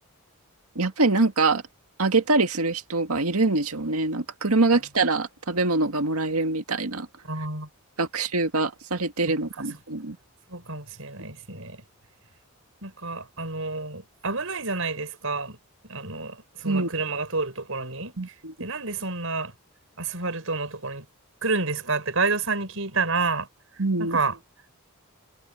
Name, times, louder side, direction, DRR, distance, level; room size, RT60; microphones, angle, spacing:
voice 1, 0.8-1.6 2.0-7.1 8.0-10.2 16.6-16.9 18.2-18.5 23.8-24.2, right 3 dB, 80° right, 2.0 m, -24 dB
voice 2, 7.2-7.7 10.5-11.8 12.8-15.6 15.9-18.1 18.6-19.5 20.0-21.0 21.4-23.5 24.0-24.4, right 3 dB, 65° right, 6.5 m, -29 dB
head